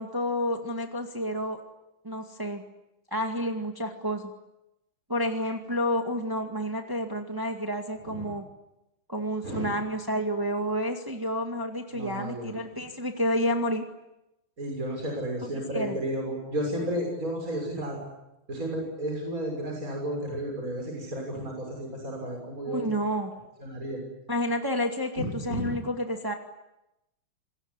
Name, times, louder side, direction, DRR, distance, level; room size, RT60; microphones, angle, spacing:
voice 1, 0.0-1.6 2.0-2.6 3.1-4.3 5.1-8.4 9.1-13.8 15.7-16.0 22.6-23.4 24.3-26.3, equal, 10° right, 3 dB, 2.0 m, -30 dB
voice 2, 11.9-12.5 14.6-18.0 18.5-22.9 23.6-24.0 25.2-25.8, right 1 dB, 40° right, 1 dB, 6.9 m, -32 dB
28.0 x 21.5 x 9.9 m, 0.93 s
omnidirectional pair, 2.3 m